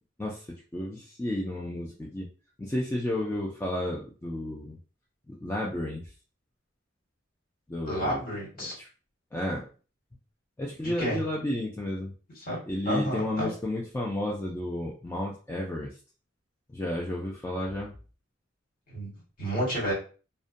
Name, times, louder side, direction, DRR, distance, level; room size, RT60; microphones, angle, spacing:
voice 1, 0.7-2.3 2.6-4.8 5.3-6.1 7.7-8.2 8.6-8.9 9.3-9.7 10.6-12.1 12.7-15.9 16.7-17.9, left 1 dB, 10° left, -3 dB, 0.3 m, -32 dB
voice 2, 7.9-8.7 10.8-11.2 12.4-12.6 12.8-13.5 18.9-19.1 19.4-19.9, equal, 45° left, -5 dB, 1.5 m, -30 dB
2.5 x 2.1 x 2.5 m, 0.36 s
head